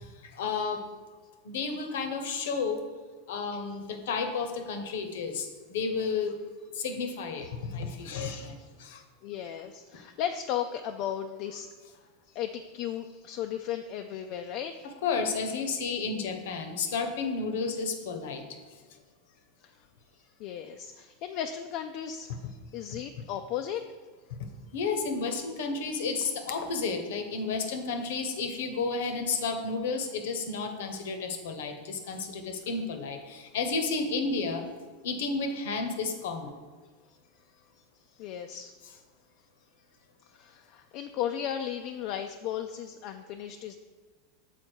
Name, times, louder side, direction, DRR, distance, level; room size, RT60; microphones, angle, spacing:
voice 1, 0.2-0.8 1.4-2.8 3.3-6.3 6.7-9.0 15.0-18.4 24.7-34.6 35.0-36.5, left 4 dB, 80° left, 6 dB, 0.8 m, -32 dB
voice 2, 8.9-11.7 12.3-14.9 19.6-19.8 20.1-23.8 37.1-37.2 38.1-38.8 40.2-43.8, left 9 dB, 55° left, 5 dB, 0.3 m, -36 dB
6.5 x 4.1 x 4.5 m, 1.4 s
supercardioid pair, 115°, 0 cm